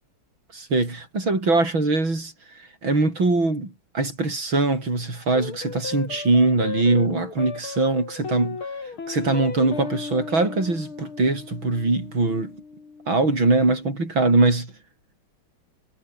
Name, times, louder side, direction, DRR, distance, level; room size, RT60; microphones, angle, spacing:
voice 1, 0.5-8.6 9.1-12.6 13.1-14.7, right 2 dB, 65° right, 8.1 m, -22 dB
sound 1, 5.3-14.0, left 5 dB, 70° left, 4.4 m, -36 dB
omnidirectional pair, 2.4 m